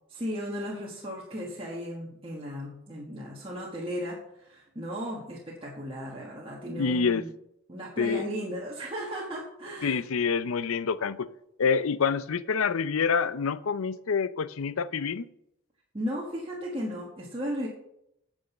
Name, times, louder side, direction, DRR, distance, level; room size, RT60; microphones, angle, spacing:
voice 1, 0.1-7.3 7.7-10.0 15.9-17.7, equal, 25° right, -4 dB, 1.5 m, -35 dB
voice 2, 6.7-7.3 8.0-8.3 9.8-11.3 11.6-15.3, left 5 dB, 85° left, 16 dB, 0.5 m, -27 dB
9.6 x 6.3 x 7.0 m, 0.80 s
head